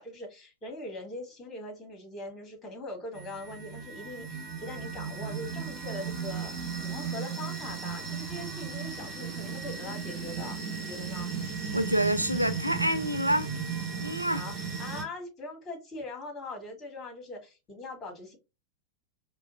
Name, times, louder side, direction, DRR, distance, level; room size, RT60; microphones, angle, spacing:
voice 1, 0.0-11.3 14.3-18.4, left 2 dB, 25° left, 1.7 m, -41 dB
sound 1, 3.1-15.0, right 5 dB, 35° right, 1.1 m, -36 dB
voice 2, 11.7-13.5 14.0-14.4, equal, 90° right, 0.3 m, -27 dB
4.8 x 2.2 x 2.4 m
figure-of-eight pair, 90°, 0 cm